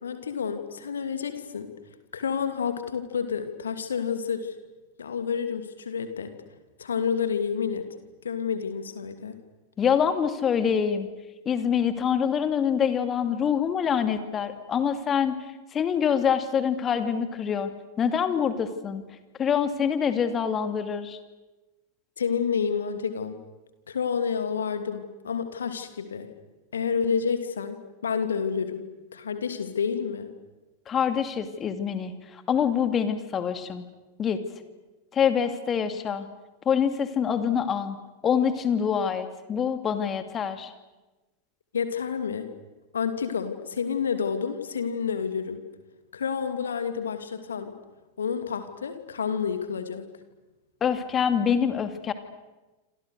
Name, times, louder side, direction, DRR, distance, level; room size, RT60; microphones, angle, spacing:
voice 1, 0.0-1.7 2.1-4.5 5.0-6.3 6.8-7.9 8.2-9.4 22.2-23.4 23.9-26.3 26.7-28.9 29.1-30.3 41.7-42.5 42.9-45.6 46.1-47.7 48.2-50.1, left 6 dB, 70° left, 8 dB, 2.7 m, -29 dB
voice 2, 9.8-11.1 11.5-15.4 15.7-17.7 18.0-19.0 19.4-21.2 30.9-33.8 34.2-34.4 35.1-36.3 36.7-38.0 38.2-40.7 50.8-52.1, left 7 dB, 25° left, 9 dB, 2.5 m, -25 dB
28.5 x 27.0 x 6.7 m, 1.1 s
figure-of-eight pair, 90°, 0 cm